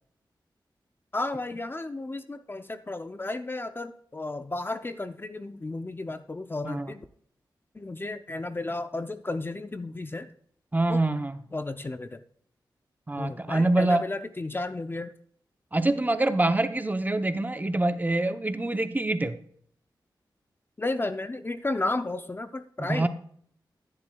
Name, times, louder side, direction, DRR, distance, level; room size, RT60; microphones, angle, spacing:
voice 1, 1.1-7.1 7.7-10.3 10.9-11.0 11.5-12.2 13.2-15.1 20.8-23.1, left 2 dB, 25° left, 10 dB, 0.5 m, -33 dB
voice 2, 10.7-11.4 13.1-14.1 15.7-19.4 22.8-23.1, right 2 dB, 20° right, 10 dB, 0.7 m, -25 dB
10.5 x 10.0 x 2.3 m, 0.62 s
wide cardioid pair, 75°, 8 cm